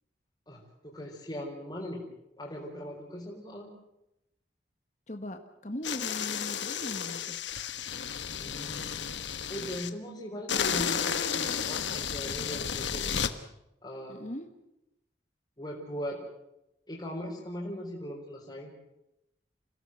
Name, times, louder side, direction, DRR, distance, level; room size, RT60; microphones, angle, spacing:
voice 1, 0.5-2.0 2.4-3.7 8.3-8.9 9.5-13.2 13.8-14.2 15.6-16.2 16.9-18.7, equal, 25° left, -4 dB, 4.2 m, -39 dB
voice 2, 5.1-7.4 14.1-14.5, left 1 dB, 40° left, 6 dB, 1.6 m, -39 dB
sound 1, 5.8-9.9 10.5-13.3, left 7 dB, 80° left, 1.4 m, -32 dB
27.5 x 17.0 x 7.8 m, 0.87 s
head